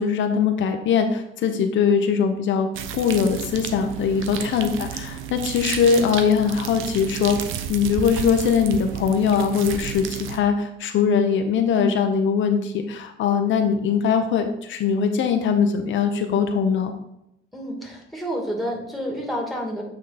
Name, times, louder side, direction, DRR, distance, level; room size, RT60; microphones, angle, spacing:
voice 1, 0.0-2.7 2.9-7.4 7.7-16.9, left 6 dB, 75° left, 5 dB, 0.7 m, -21 dB
sound 1, 2.7-10.4, right 9 dB, 85° right, 0.7 m, -32 dB
voice 2, 17.5-19.8, equal, ahead, -1 dB, 2.2 m, -30 dB
8.6 x 3.7 x 4.1 m, 0.81 s
cardioid pair, 90°, 20 cm